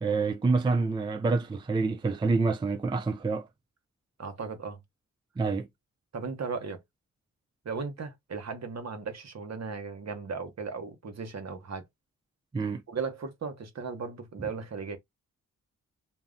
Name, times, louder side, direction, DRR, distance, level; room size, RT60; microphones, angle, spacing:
voice 1, 0.0-3.5 5.4-5.7 12.5-12.8, right 3 dB, 15° right, 0.4 m, -27 dB
voice 2, 4.2-4.8 6.1-6.8 7.6-11.9 12.9-15.0, right 5 dB, 50° right, 0.9 m, -36 dB
2.3 x 2.1 x 3.7 m
supercardioid pair, 45°, 35 cm